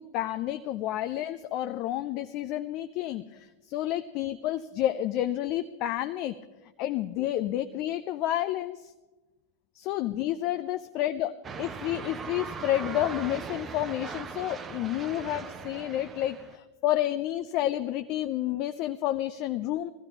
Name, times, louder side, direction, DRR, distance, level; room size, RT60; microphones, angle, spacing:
voice 1, 0.0-6.4 6.8-8.9 9.7-11.3 11.6-19.9, left 13 dB, 40° left, 9 dB, 0.5 m, -30 dB
sound 1, 11.4-16.6, right 5 dB, 25° right, 0.8 m, -39 dB
21.0 x 15.0 x 3.0 m, 1.2 s
figure-of-eight pair, 90°, 0 cm